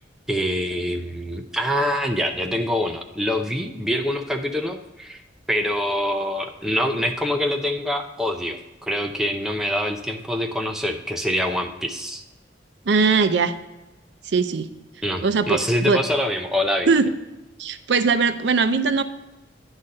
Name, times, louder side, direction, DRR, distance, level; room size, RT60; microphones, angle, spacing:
voice 1, 0.3-5.2 5.5-12.2 15.0-16.9, equal, 5° right, 3 dB, 0.5 m, -25 dB
voice 2, 12.9-13.5 14.3-14.7 15.2-15.6 15.9-16.0 16.9-17.1 17.6-19.0, right 4 dB, 75° right, 10 dB, 0.5 m, -20 dB
9.8 x 4.1 x 5.2 m, 1.0 s
head